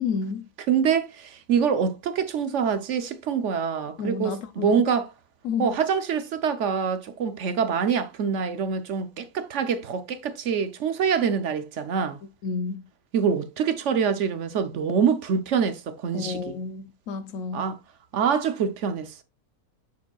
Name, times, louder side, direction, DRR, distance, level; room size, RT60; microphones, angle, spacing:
voice 1, 0.0-0.5 4.0-4.7 5.4-5.7 12.4-12.9 16.1-17.7, left 5 dB, 65° left, 1.0 m, -30 dB
voice 2, 0.7-5.1 5.6-12.2 13.1-16.5 17.5-17.8 18.1-19.2, right 7 dB, 60° right, 0.9 m, -25 dB
7.1 x 6.3 x 2.3 m
omnidirectional pair, 1.6 m